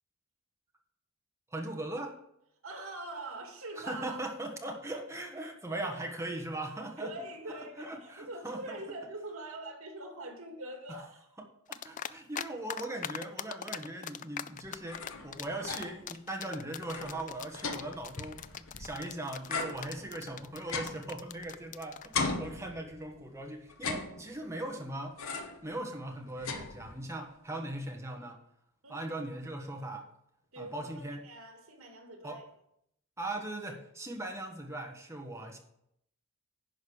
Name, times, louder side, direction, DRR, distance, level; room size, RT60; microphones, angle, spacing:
voice 1, 1.5-2.2 3.8-7.1 7.5-8.8 10.9-11.0 11.7-25.2 25.6-28.4 28.9-30.0 30.6-31.2 32.2-32.4 33.2-35.6, right 1 dB, 15° right, 3 dB, 1.4 m, -39 dB
voice 2, 2.6-4.2 7.0-11.3 28.8-29.2 30.5-32.4, right 2 dB, 75° right, 3 dB, 2.3 m, -43 dB
sound 1, 11.7-12.4 12.7-22.2, left 9 dB, 35° left, 0.4 m, -40 dB
sound 2, 14.6-16.1 16.4-16.5 16.8-19.0 19.5-21.7 22.1-23.2 23.7-24.6 25.2-25.7 26.0-27.2, left 4 dB, 75° left, 1.1 m, -38 dB
10.5 x 5.3 x 6.5 m, 0.75 s
head